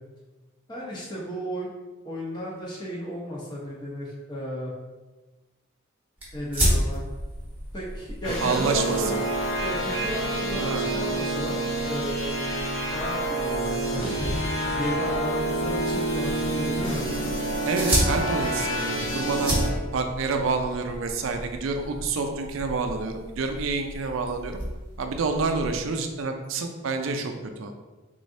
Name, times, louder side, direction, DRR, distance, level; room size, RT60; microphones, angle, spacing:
voice 1, 0.7-1.7 2.0-4.7 6.3-7.0 7.7-9.2 9.6-11.6 11.8-12.3 12.9-14.3 14.7-17.0, equal, 20° left, -5 dB, 0.7 m, -34 dB
sound 1, 6.2-25.8, equal, 10° right, 1.0 m, -33 dB
sound 2, 8.2-19.7, right 1 dB, 70° left, 1.5 m, -28 dB
voice 2, 8.4-9.2 10.6-10.9 17.6-19.6 19.9-24.6 25.0-27.3 27.6-27.7, right 4 dB, 75° right, 5 dB, 0.4 m, -28 dB
3.7 x 3.2 x 2.6 m, 1.2 s
head